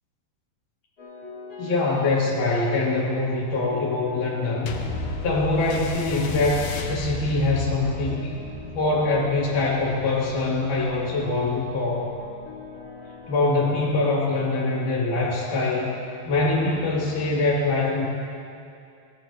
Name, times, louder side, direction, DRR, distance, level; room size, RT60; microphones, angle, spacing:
sound 1, 1.0-2.2 3.2-17.5, left 3 dB, 40° left, 4.6 m, -43 dB
voice 1, 1.6-4.8 5.2-8.4 8.7-12.1 13.3-16.0 16.3-18.1, left 2 dB, 60° left, -6 dB, 3.9 m, -24 dB
sound 2, 4.7-13.4 14.2-14.3, left 3 dB, 90° left, 2.8 m, -34 dB
20.5 x 17.5 x 2.8 m, 2.5 s
omnidirectional pair, 4.2 m